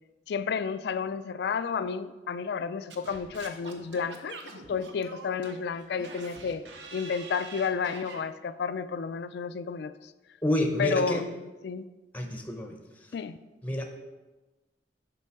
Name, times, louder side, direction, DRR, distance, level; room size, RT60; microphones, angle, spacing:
voice 1, 0.3-6.6 6.9-10.1 10.8-11.9 13.1-13.4, left 6 dB, 65° left, 13 dB, 0.3 m, -31 dB
Singing / Scratching (performance technique), 2.9-8.2, right 3 dB, 85° right, 0.8 m, -45 dB
voice 2, 10.4-11.2 12.1-12.8 13.6-13.9, equal, 10° left, 4 dB, 0.7 m, -28 dB
6.8 x 5.3 x 4.7 m, 1.2 s
head